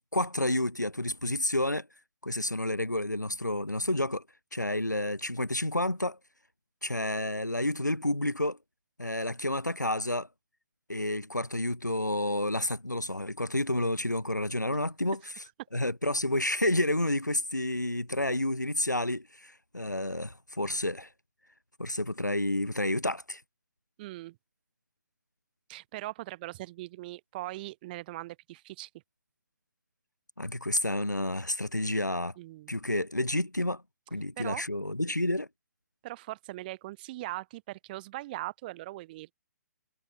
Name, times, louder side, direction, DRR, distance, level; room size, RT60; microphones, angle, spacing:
voice 1, 0.1-1.9 2.2-4.2 4.5-6.2 6.8-8.6 9.0-10.3 10.9-15.2 15.7-21.1 21.8-23.4 30.4-32.3 32.7-33.8 34.1-35.5, left 1 dB, 85° left, 2.6 m, -30 dB
voice 2, 24.0-24.4 25.7-28.9 32.4-32.7 34.4-34.6 36.0-39.3, right 18 dB, 30° right, 3.4 m, -40 dB
figure-of-eight pair, 135°, 9 cm